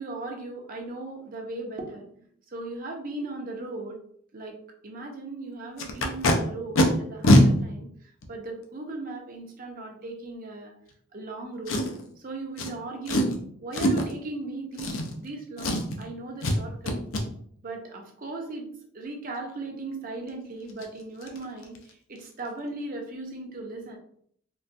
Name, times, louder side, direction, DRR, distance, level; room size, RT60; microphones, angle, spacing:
voice 1, 0.0-2.1 2.5-4.0 4.3-4.6 4.8-10.7 11.1-11.9 12.2-17.0 17.6-18.7 18.9-24.0, right 2 dB, 45° right, 1 dB, 0.6 m, -37 dB
Packing tape duct tape, 5.8-6.3 6.8-6.9 7.2-7.4 8.2-8.3 11.7-12.1 12.6-12.7 13.1-13.4 13.7-14.1 14.8-15.3 15.6-16.0 16.4-16.6 16.9-17.2 20.3-20.4 20.7-20.9 21.2-21.4 21.6-21.9 22.2-22.3, left 1 dB, 85° left, 0.5 m, -22 dB
3.7 x 2.2 x 2.6 m, 0.63 s
head